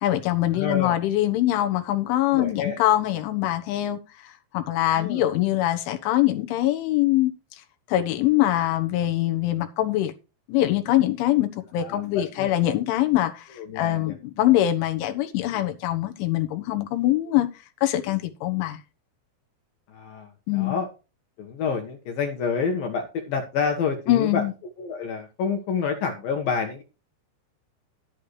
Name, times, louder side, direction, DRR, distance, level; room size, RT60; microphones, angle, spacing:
voice 1, 0.0-7.3 7.9-10.1 10.5-17.5 17.8-18.8 20.5-20.8 24.1-24.5, left 14 dB, 85° left, 3.6 m, -23 dB
voice 2, 0.5-1.0 2.3-2.8 5.0-5.2 11.8-12.5 13.6-14.1 19.9-20.9 21.4-24.4 24.8-26.8, left 6 dB, 65° left, 2.7 m, -28 dB
12.0 x 10.5 x 3.2 m
omnidirectional pair, 5.4 m